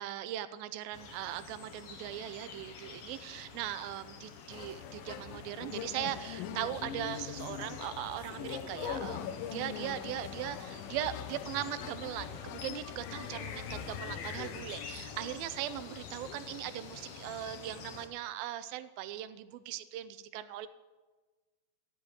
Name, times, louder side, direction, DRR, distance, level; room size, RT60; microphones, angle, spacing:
voice 1, 0.0-20.7, right 12 dB, 85° right, 13 dB, 2.4 m, -39 dB
sound 1, 0.9-18.1, left 5 dB, 65° left, 1.5 m, -48 dB
sound 2, 4.5-16.6, left 9 dB, 80° left, 2.3 m, -43 dB
14.5 x 5.3 x 9.5 m, 1.3 s
omnidirectional pair, 4.2 m